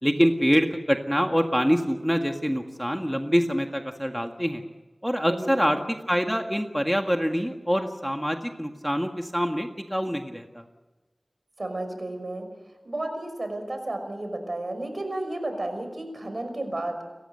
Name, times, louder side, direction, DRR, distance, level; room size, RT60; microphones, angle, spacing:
voice 1, 0.0-4.6 5.0-10.6, equal, ahead, 4 dB, 1.8 m, -25 dB
voice 2, 5.3-5.8 11.6-12.5 12.8-17.0, right 2 dB, 60° right, 7 dB, 5.6 m, -32 dB
29.5 x 14.5 x 8.0 m, 1.2 s
wide cardioid pair, 50°, 0 cm